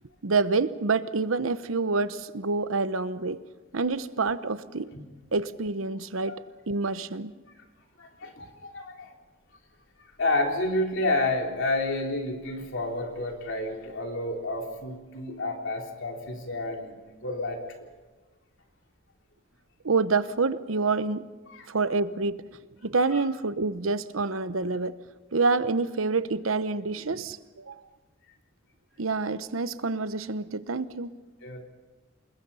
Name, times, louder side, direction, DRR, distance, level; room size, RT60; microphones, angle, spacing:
voice 1, 0.2-3.4 3.7-4.9 5.3-6.4 6.7-7.3 19.8-21.2 21.7-22.4 22.8-25.0 25.3-27.8 29.0-31.1, right 4 dB, 85° right, 13 dB, 0.9 m, -27 dB
voice 2, 8.0-9.1 10.2-17.9 21.5-21.7 23.1-23.2 31.4-31.6, left 2 dB, 65° left, 2 dB, 3.6 m, -30 dB
27.5 x 21.5 x 5.6 m, 1.2 s
head